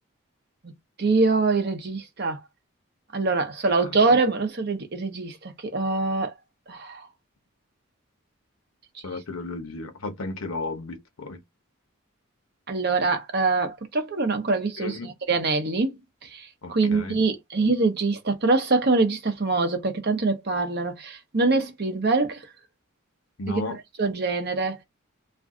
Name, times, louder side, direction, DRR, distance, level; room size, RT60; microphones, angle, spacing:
voice 1, 1.0-2.4 3.1-6.3 6.7-7.0 12.7-16.0 16.3-22.4 24.0-24.8, right 3 dB, 50° right, 0.7 m, -24 dB
voice 2, 9.0-11.4 14.8-15.1 16.6-17.2 23.4-23.8, left 2 dB, 85° left, 0.8 m, -34 dB
2.5 x 2.3 x 3.6 m
head